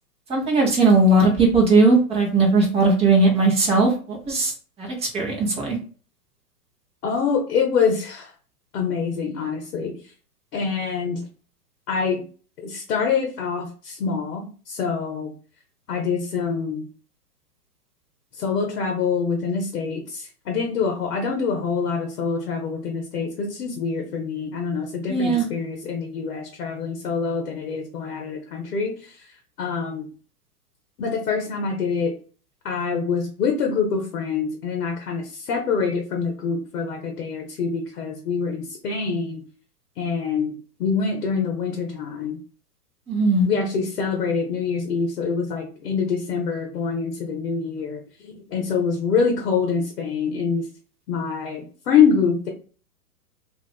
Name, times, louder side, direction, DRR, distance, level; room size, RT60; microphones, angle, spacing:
voice 1, 0.3-4.5 4.8-4.9 5.1-5.8 25.1-25.5 43.1-43.5, right 3 dB, 15° right, -1 dB, 0.9 m, -18 dB
voice 2, 7.0-8.3 8.7-9.9 10.5-11.2 11.9-12.2 12.6-15.3 15.9-16.9 18.4-29.1 29.6-30.1 31.0-32.1 32.6-39.4 40.0-40.5 40.8-42.4 43.4-50.7 51.1-52.5, left 5 dB, 65° left, 2 dB, 0.9 m, -25 dB
2.5 x 2.4 x 3.5 m, 0.40 s
hypercardioid pair, 115°, 47 cm